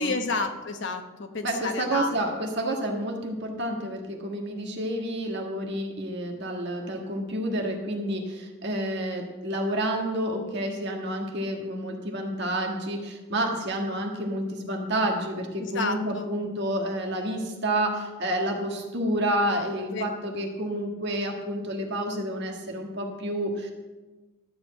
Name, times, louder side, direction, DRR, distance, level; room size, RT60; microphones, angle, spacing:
voice 1, 0.0-2.2 15.6-16.3 19.8-20.0, left 3 dB, 55° left, 5 dB, 1.1 m, -30 dB
voice 2, 1.4-23.7, right 1 dB, 50° right, 1 dB, 1.6 m, -29 dB
13.0 x 5.6 x 7.8 m, 1.2 s
head